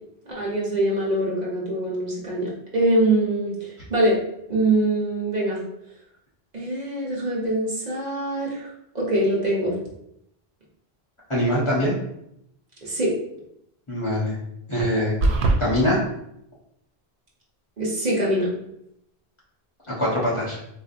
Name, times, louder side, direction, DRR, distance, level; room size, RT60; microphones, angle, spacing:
voice 1, 0.3-4.2 4.5-5.6 6.5-8.7 8.9-9.8 12.8-13.1 17.8-18.5, right 1 dB, 45° right, -4 dB, 0.9 m, -23 dB
voice 2, 11.3-11.9 13.9-14.4 14.7-15.1 15.6-16.0 20.0-20.6, equal, 30° left, -7 dB, 0.8 m, -22 dB
sound 1, 15.2-15.6, right 2 dB, 85° right, 0.9 m, -19 dB
4.0 x 2.6 x 2.4 m, 0.77 s
omnidirectional pair, 1.1 m